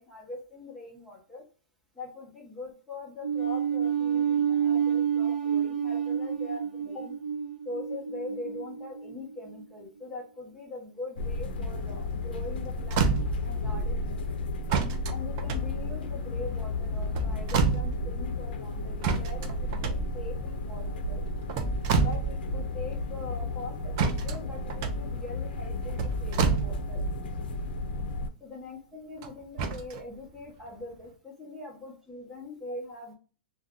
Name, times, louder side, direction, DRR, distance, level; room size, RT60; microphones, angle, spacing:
voice 1, 0.0-1.5 1.9-7.2 7.6-14.4 15.1-21.3 22.0-27.1 28.4-33.1, left 2 dB, ahead, -5 dB, 0.9 m, -42 dB
sound 1, 3.2-9.6, right 8 dB, 80° right, 0.9 m, -29 dB
sound 2, 11.2-28.3, left 2 dB, 85° left, 0.5 m, -33 dB
sound 3, 12.4-12.5 12.8-13.6 14.7-16.3 17.0-18.2 19.0-20.5 21.3-22.6 22.8-22.9 24.0-27.2 29.2-30.0 30.7-30.8, right 4 dB, 35° right, 0.4 m, -29 dB
2.6 x 2.3 x 3.6 m, 0.35 s
supercardioid pair, 170°, 5 cm